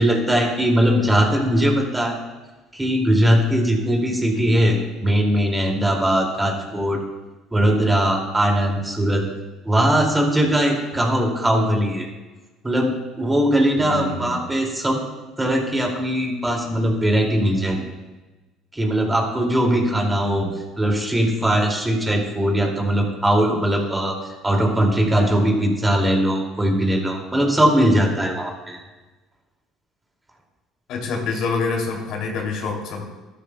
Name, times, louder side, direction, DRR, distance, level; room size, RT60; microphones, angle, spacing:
voice 1, 0.0-2.2 2.7-7.0 7.5-9.3 9.6-12.1 12.6-15.0 15.4-17.9 18.7-20.5 20.8-24.2 24.4-28.8, right 1 dB, 15° right, 1 dB, 2.5 m, -20 dB
voice 2, 4.3-4.6 6.4-6.6 13.8-14.4 20.1-20.5 30.9-33.0, left 4 dB, 65° left, 0 dB, 2.9 m, -27 dB
12.5 x 12.0 x 2.3 m, 1.2 s
hypercardioid pair, 70°, 0 cm